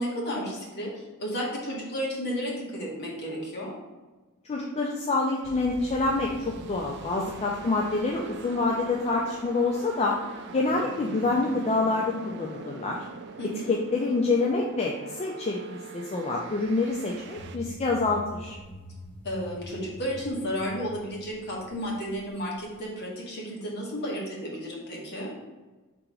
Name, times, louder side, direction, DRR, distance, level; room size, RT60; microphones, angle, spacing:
voice 1, 0.0-3.7 13.4-13.7 19.2-25.3, equal, 50° left, -4 dB, 1.2 m, -33 dB
voice 2, 4.5-10.2 10.5-13.0 13.4-18.6, left 3 dB, 30° left, -1 dB, 0.4 m, -27 dB
sound 1, 5.4-17.6, right 5 dB, 50° right, 0.4 m, -43 dB
sound 2, 17.3-22.8, equal, 10° left, 1.2 m, -45 dB
3.7 x 2.9 x 4.7 m, 1.2 s
head